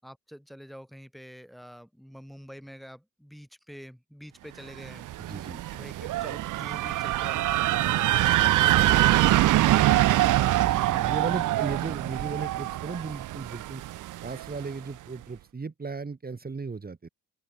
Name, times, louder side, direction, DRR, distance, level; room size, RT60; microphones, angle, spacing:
voice 1, 0.0-5.4 5.7-8.4, equal, ahead, 6.8 m, -47 dB
sound 1, 4.8-14.6, right 15 dB, 55° right, 0.6 m, -24 dB
voice 2, 5.2-5.7 10.4-13.8 14.2-17.1, right 4 dB, 25° right, 4.2 m, -36 dB
open air
cardioid pair, 105°, 37 cm